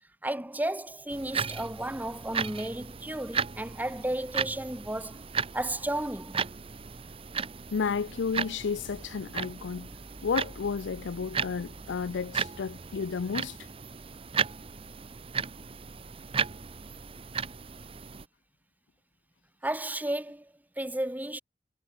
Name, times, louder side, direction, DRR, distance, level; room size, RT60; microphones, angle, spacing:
voice 1, 0.2-5.2 5.5-6.4 19.6-21.4, right 1 dB, 10° right, 1.2 m, -33 dB
sound 1, 1.1-18.2, right 6 dB, 30° right, 0.7 m, -36 dB
voice 2, 7.7-9.9 10.2-13.6, left 5 dB, 85° left, 0.5 m, -32 dB
head